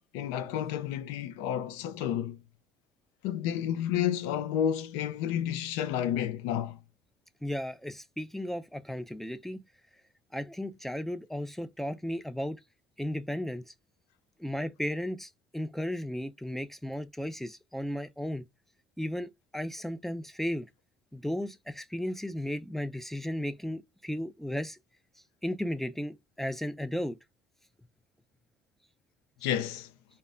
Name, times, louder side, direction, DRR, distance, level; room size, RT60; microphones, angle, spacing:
voice 1, 0.1-2.4 3.2-6.8 29.4-29.9, left 10 dB, 80° left, 0.5 m, -31 dB
voice 2, 7.4-9.6 10.3-12.6 13.0-13.7 14.4-18.5 19.0-20.7 21.1-24.8 25.4-27.2, equal, ahead, 0.3 m, -35 dB
2.2 x 2.0 x 3.6 m
supercardioid pair, 70°, 18 cm